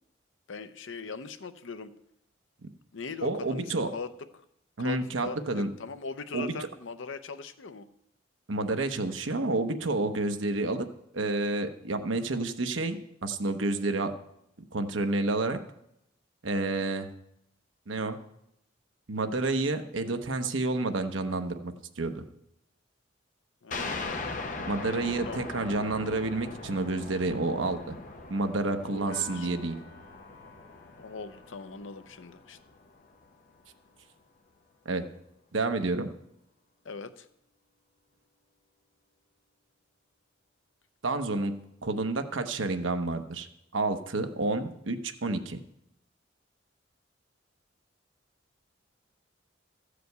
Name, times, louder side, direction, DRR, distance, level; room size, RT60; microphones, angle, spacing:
voice 1, 0.5-1.9 2.9-4.4 4.8-7.9 23.6-24.1 25.3-25.5 28.9-29.5 31.0-32.6 36.8-37.3, left 4 dB, 85° left, 10 dB, 0.7 m, -40 dB
voice 2, 3.2-3.9 4.8-5.7 6.3-6.5 8.5-10.9 11.1-14.1 14.7-15.6 16.4-17.1 17.9-18.2 19.1-22.2 24.6-28.0 28.3-29.8 34.8-35.0 35.5-36.1 41.0-41.5 41.8-43.5 43.7-45.6, right 2 dB, 85° right, 7 dB, 0.9 m, -29 dB
sound 1, 23.7-32.9, left 3 dB, 40° left, 1.0 m, -40 dB
Piano, 29.1-35.5, left 4 dB, 60° left, 1.3 m, -52 dB
14.0 x 5.0 x 8.0 m, 0.82 s
head